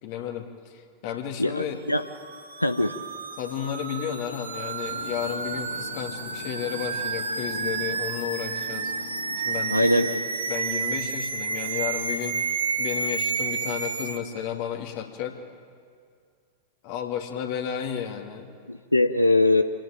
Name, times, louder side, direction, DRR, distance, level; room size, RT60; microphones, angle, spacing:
voice 1, 0.0-1.8 3.4-8.9 9.4-10.1 10.5-12.4 12.8-15.4 16.8-18.5, left 9 dB, 50° left, 3 dB, 2.5 m, -32 dB
voice 2, 1.4-2.0 2.6-3.0 9.7-10.2 18.7-19.6, left 2 dB, 85° left, 10 dB, 0.7 m, -22 dB
sound 1, 1.9-14.2, right 5 dB, 75° right, 1.9 m, -31 dB
sound 2, 4.8-10.0, left 4 dB, 70° left, 2.3 m, -42 dB
26.5 x 18.0 x 9.0 m, 2.2 s
figure-of-eight pair, 90°, 0 cm